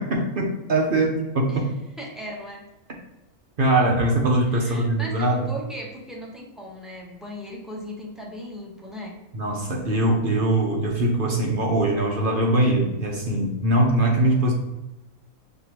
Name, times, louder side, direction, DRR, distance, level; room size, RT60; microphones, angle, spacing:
voice 1, 0.0-1.7 3.6-5.5 9.3-14.5, right 1 dB, 50° right, -1 dB, 0.7 m, -22 dB
voice 2, 2.0-2.6 4.5-9.2, equal, ahead, -3 dB, 0.6 m, -38 dB
5.7 x 3.1 x 2.9 m, 0.96 s
omnidirectional pair, 1.5 m